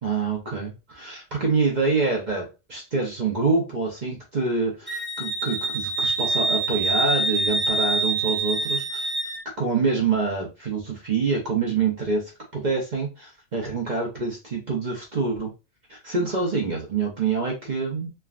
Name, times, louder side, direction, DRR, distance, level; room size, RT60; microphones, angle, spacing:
voice 1, 0.0-9.1 9.6-15.5 15.9-18.1, right 4 dB, 45° right, -1 dB, 0.7 m, -26 dB
Wind instrument woodwind instrument, 4.9-9.4, right 3 dB, ahead, 0.4 m, -25 dB
3.4 x 2.3 x 2.4 m, 0.28 s
omnidirectional pair, 1.4 m